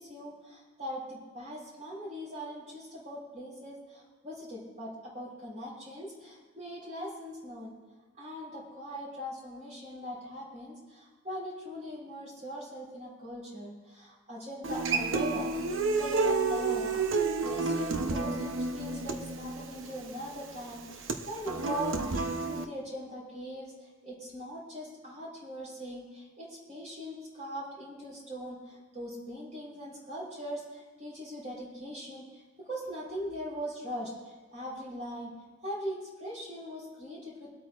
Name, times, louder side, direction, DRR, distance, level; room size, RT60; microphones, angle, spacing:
voice 1, 0.0-7.7 8.2-15.5 16.0-23.7 24.0-35.3 35.6-37.5, equal, 40° right, -5 dB, 3.8 m, -41 dB
Human voice / Acoustic guitar, 14.6-22.6, right 3 dB, 70° right, 0.8 m, -30 dB
25.0 x 8.5 x 2.4 m, 1.3 s
head